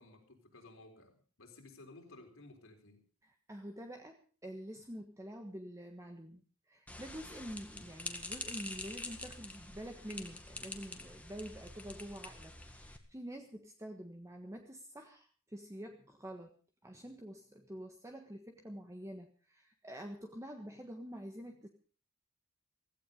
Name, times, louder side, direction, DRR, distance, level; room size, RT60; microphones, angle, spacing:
voice 1, 0.0-3.1, left 2 dB, 70° left, 4.1 m, -56 dB
voice 2, 3.2-6.4 6.7-16.6 16.8-21.7, equal, 15° right, 1.4 m, -47 dB
sound 1, 6.9-13.0, left 2 dB, 5° left, 1.9 m, -46 dB
16.5 x 15.5 x 5.3 m
head